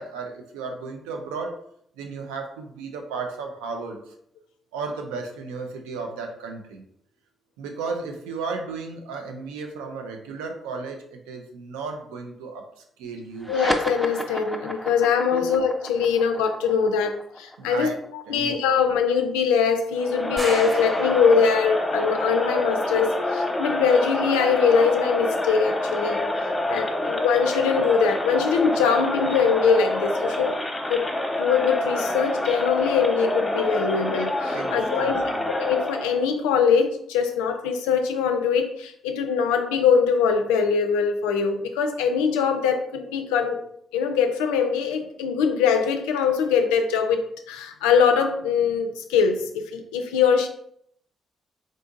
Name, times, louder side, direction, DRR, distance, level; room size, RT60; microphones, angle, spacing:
voice 1, 0.0-1.5 2.0-4.1 4.7-6.8 7.6-12.7 13.0-13.5 15.3-15.5 17.6-18.0 18.3-18.5 34.5-35.5, right 4 dB, 85° right, 4 dB, 0.4 m, -34 dB
sound 1, 13.4-20.2, equal, 5° right, 0.5 m, -33 dB
voice 2, 13.5-17.9 18.3-26.3 26.7-30.6 30.9-31.1 31.4-35.2 35.6-43.6 43.9-50.5, left 6 dB, 85° left, 6 dB, 0.3 m, -22 dB
Crowd, 19.9-36.2, left 1 dB, 20° left, 0.8 m, -27 dB
sound 2, 20.4-21.9, right 1 dB, 30° right, 0.9 m, -34 dB
3.6 x 2.6 x 2.4 m, 0.70 s
hypercardioid pair, 45°, 0 cm